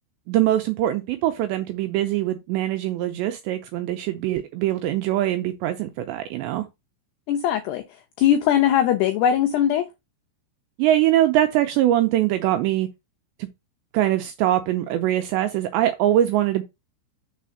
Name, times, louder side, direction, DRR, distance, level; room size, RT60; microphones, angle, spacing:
voice 1, 0.3-6.7 10.8-12.9 13.4-13.5 13.9-16.6, right 13 dB, 85° right, 2.6 m, -22 dB
voice 2, 7.3-7.8 8.2-9.9, left 10 dB, 85° left, 2.3 m, -20 dB
6.7 x 4.2 x 6.4 m
omnidirectional pair, 5.8 m